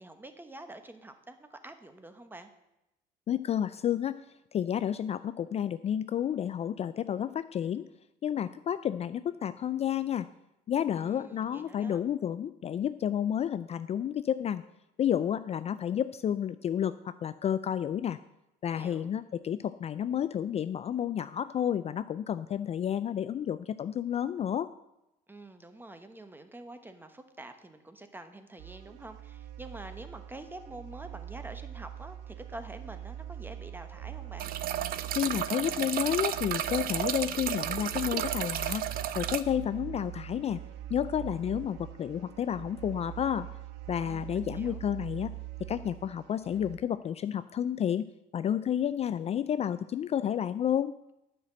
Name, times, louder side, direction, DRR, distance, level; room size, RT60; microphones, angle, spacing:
voice 1, 0.0-2.5 10.9-12.0 18.7-19.1 25.3-34.5 44.0-44.8, right 2 dB, 10° right, 9 dB, 1.0 m, -47 dB
voice 2, 3.3-4.2 4.5-7.9 8.2-10.3 10.7-14.6 15.0-18.2 18.6-24.7 35.1-38.8 39.2-40.6 40.9-43.5 43.9-45.3 45.6-48.1 48.3-50.9, left 9 dB, 40° left, 13 dB, 0.3 m, -31 dB
sound 1, 28.6-46.8, right 12 dB, 90° right, 0.8 m, -43 dB
sound 2, 34.4-39.4, right 11 dB, 60° right, 0.6 m, -33 dB
10.0 x 5.9 x 7.7 m, 0.90 s
cardioid pair, 110°, 17 cm